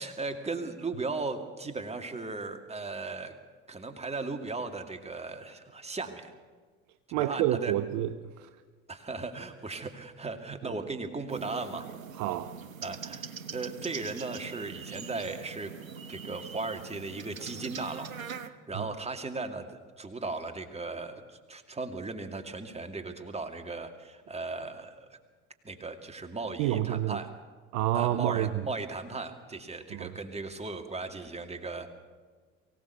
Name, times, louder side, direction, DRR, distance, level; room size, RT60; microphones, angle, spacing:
voice 1, 0.0-3.3 3.7-6.3 7.2-7.7 8.9-11.9 12.8-15.7 16.1-18.1 18.4-25.2 25.6-27.3 27.9-31.9, right 3 dB, 15° right, 2.4 m, -37 dB
voice 2, 7.1-8.5 10.6-10.8 12.2-12.6 18.7-18.9 26.6-27.2 27.7-28.6 29.9-30.1, right 13 dB, 45° right, 0.8 m, -29 dB
sound 1, 11.3-18.5, right 6 dB, 80° right, 0.9 m, -42 dB
23.5 x 16.5 x 6.9 m
figure-of-eight pair, 60°, 40 cm